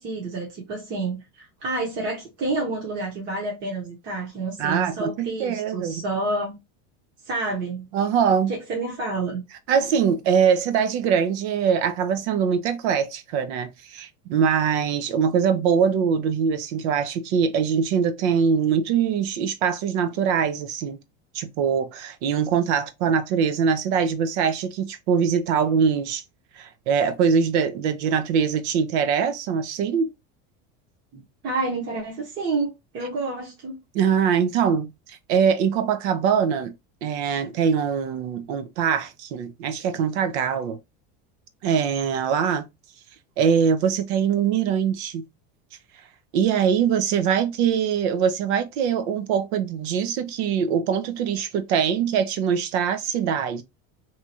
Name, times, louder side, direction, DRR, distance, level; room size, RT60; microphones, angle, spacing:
voice 1, 0.0-6.6 7.3-7.8 8.5-9.4 31.4-33.8, right 3 dB, 35° right, 0.9 m, -29 dB
voice 2, 4.6-6.0 7.9-8.5 9.7-21.0 21.3-26.2 26.6-30.1 33.9-36.7 37.0-40.8 41.6-42.6 43.4-45.2 46.3-53.6, right 7 dB, 80° right, 0.7 m, -23 dB
2.8 x 2.3 x 2.8 m
cardioid pair, 160°, 33 cm